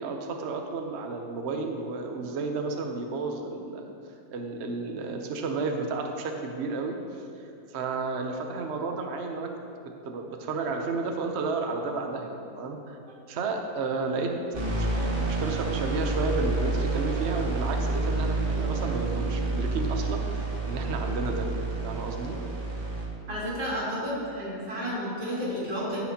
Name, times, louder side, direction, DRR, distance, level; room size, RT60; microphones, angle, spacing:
voice 1, 0.0-3.8 4.3-7.0 7.7-9.5 10.0-13.0 13.3-14.4 14.7-21.5 21.8-22.4, right 3 dB, 55° right, 3 dB, 0.8 m, -32 dB
sound 1, 14.5-23.1, right 2 dB, 35° right, 1.3 m, -29 dB
voice 2, 23.3-26.0, equal, 75° right, -7 dB, 3.0 m, -31 dB
15.0 x 6.1 x 2.8 m, 2.6 s
omnidirectional pair, 1.8 m